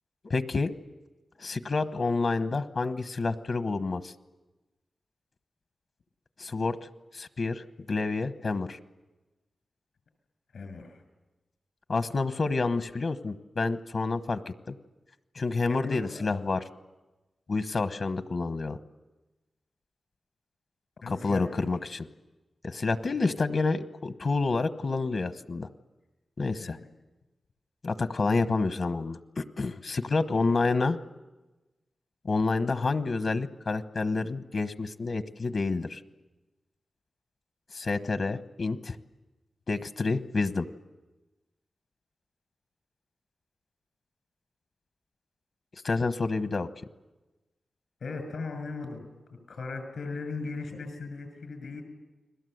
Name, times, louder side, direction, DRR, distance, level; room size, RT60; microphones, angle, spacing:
voice 1, 0.2-0.7 1.4-4.1 6.4-6.8 7.1-8.8 11.9-14.4 14.7-14.8 15.4-16.6 17.5-18.8 21.1-22.0 22.6-25.7 26.4-26.8 27.8-31.0 32.2-36.0 37.7-39.0 39.7-40.7 45.8-46.7, left 3 dB, 55° left, 10 dB, 1.1 m, -28 dB
voice 2, 10.5-11.0 15.7-16.2 21.0-21.7 26.6-26.9 30.2-30.4 48.0-49.0 49.3-51.8, left 4 dB, 80° left, 7 dB, 6.6 m, -38 dB
30.0 x 21.5 x 8.0 m, 1.1 s
wide cardioid pair, 125°, 0 cm